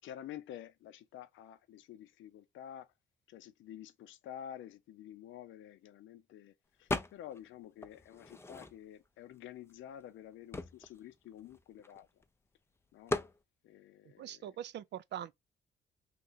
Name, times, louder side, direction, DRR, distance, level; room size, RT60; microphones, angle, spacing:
voice 1, 0.0-2.9 3.3-12.2 12.9-13.2 13.6-14.6, left 10 dB, 75° left, 0.5 m, -50 dB
sound 1, 6.9-7.5 7.8-9.1 9.7-9.8 10.0-12.2 13.1-13.4, left 2 dB, 10° left, 0.5 m, -38 dB
voice 2, 14.2-15.3, right 10 dB, 60° right, 0.5 m, -42 dB
3.0 x 2.4 x 3.9 m
cardioid pair, 90°, 20 cm